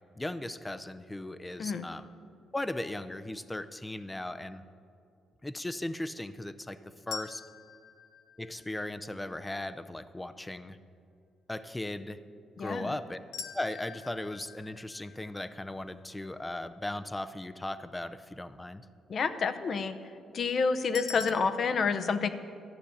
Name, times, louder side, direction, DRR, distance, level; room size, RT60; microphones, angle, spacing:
voice 1, 0.2-2.1 2.5-4.6 5.4-7.4 8.4-10.8 11.5-12.2 12.6-13.2 13.5-18.8, left 1 dB, 15° left, 12 dB, 0.6 m, -37 dB
sound 1, 7.1-9.2 13.3-16.4 20.9-21.3, left 6 dB, 85° left, 0.7 m, -45 dB
voice 2, 12.6-12.9 19.1-20.0 20.3-22.3, left 5 dB, 50° left, 11 dB, 0.7 m, -29 dB
13.0 x 6.8 x 8.6 m, 2.4 s
cardioid pair, 90°, 0 cm